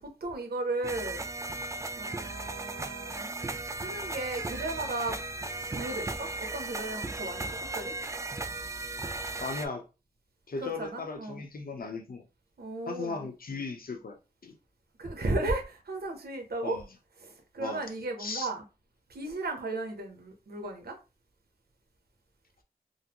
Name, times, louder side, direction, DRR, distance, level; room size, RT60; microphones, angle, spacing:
voice 1, 0.2-1.2 2.0-3.3 3.8-5.2 5.7-7.9 10.6-11.4 12.6-13.3 15.0-16.8 17.2-18.6 19.1-21.0, right 2 dB, 85° right, 0.9 m, -35 dB
sound 1, 0.8-9.7, right 2 dB, 20° right, 0.3 m, -36 dB
voice 2, 9.4-9.8 10.5-12.3 12.9-14.6 16.6-16.8 17.6-17.8 18.2-18.5, left 4 dB, 65° left, 0.8 m, -37 dB
3.8 x 2.1 x 2.9 m
wide cardioid pair, 65°, 16 cm